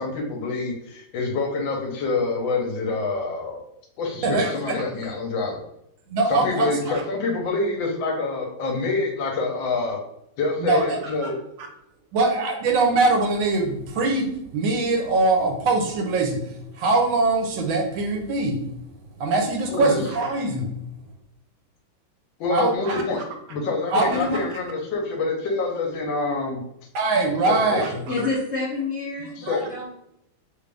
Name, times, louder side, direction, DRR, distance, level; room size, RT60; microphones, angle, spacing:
voice 1, 0.0-3.6 4.0-5.6 6.3-10.0 10.4-11.4 19.7-20.0 22.4-23.2 23.5-26.6 27.5-28.3 29.4-29.7, left 3 dB, 80° left, 2 dB, 1.4 m, -26 dB
voice 2, 4.2-4.8 6.1-7.0 10.6-11.3 12.1-16.5 16.8-18.6 19.2-20.7 22.5-23.0 23.9-24.4 26.9-28.1 29.5-29.6, right 3 dB, 80° right, 3 dB, 1.4 m, -22 dB
voice 3, 28.1-29.9, left 3 dB, 60° left, -6 dB, 0.7 m, -28 dB
3.4 x 2.5 x 3.3 m, 0.80 s
omnidirectional pair, 2.1 m